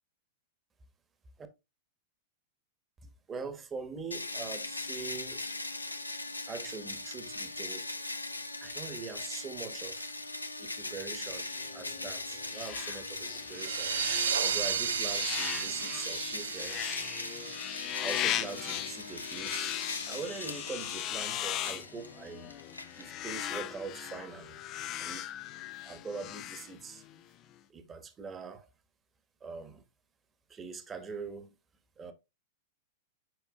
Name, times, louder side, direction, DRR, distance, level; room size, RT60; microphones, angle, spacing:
voice 1, 3.0-5.4 6.5-7.9 8.6-10.1 10.6-11.5 11.7-17.1 18.0-22.5 23.0-24.6 25.0-25.3 25.8-27.0 27.7-28.7 29.4-29.8 30.5-31.5 32.0-32.1, right 4 dB, 20° right, 1.3 m, -43 dB
sound 1, 4.1-23.5, left 2 dB, 90° left, 0.7 m, -40 dB
sound 2, 11.3-27.2, left 12 dB, 40° left, 0.6 m, -39 dB
sound 3, 13.5-18.8, right 7 dB, 70° right, 0.6 m, -34 dB
8.0 x 5.4 x 2.5 m
figure-of-eight pair, 95°, 0 cm